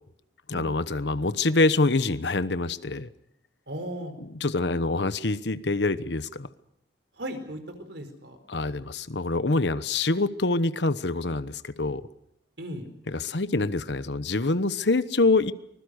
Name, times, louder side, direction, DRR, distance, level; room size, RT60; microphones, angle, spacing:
voice 1, 0.5-3.1 4.4-6.5 8.5-12.1 13.1-15.5, left 3 dB, 75° left, 14 dB, 1.1 m, -25 dB
voice 2, 3.7-4.1 7.1-8.4 12.6-12.8, equal, 75° right, 8 dB, 4.5 m, -36 dB
25.0 x 20.5 x 6.6 m, 0.73 s
head